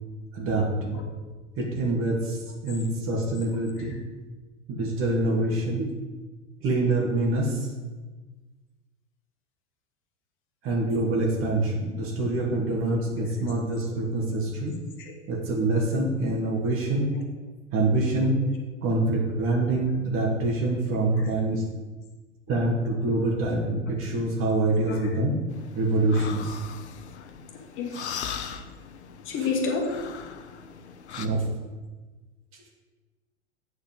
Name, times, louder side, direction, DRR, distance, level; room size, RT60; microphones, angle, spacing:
voice 1, 0.3-1.0 1.6-4.0 4.7-5.9 6.6-7.7 10.6-14.7 15.3-17.1 17.7-18.4 18.8-21.7 22.5-25.3 25.7-26.6 28.0-28.1 31.2-31.5, right 2 dB, 35° right, 0 dB, 2.4 m, -25 dB
sound 1, 25.5-31.3, left 8 dB, 65° left, 0.9 m, -39 dB
voice 2, 29.2-29.9, left 4 dB, 35° left, 1 dB, 1.8 m, -30 dB
8.3 x 5.1 x 7.7 m, 1.3 s
figure-of-eight pair, 90°, 35 cm